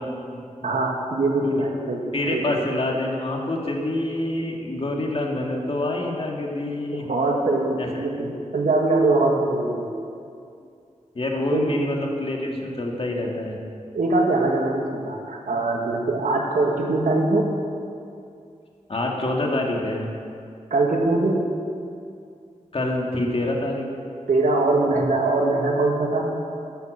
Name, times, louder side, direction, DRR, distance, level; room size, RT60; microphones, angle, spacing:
voice 1, 0.0-0.7 1.4-1.6 2.1-7.0 7.8-7.9 8.2-8.3 11.1-13.6 18.9-20.1 22.7-23.8, left 1 dB, 45° left, -1 dB, 2.1 m, -26 dB
voice 2, 0.6-2.0 2.3-2.6 6.9-9.9 11.5-11.7 13.9-17.5 20.7-21.4 24.3-26.3, right 2 dB, 85° right, 0 dB, 2.0 m, -22 dB
12.5 x 10.5 x 6.6 m, 2.4 s
wide cardioid pair, 95°, 13 cm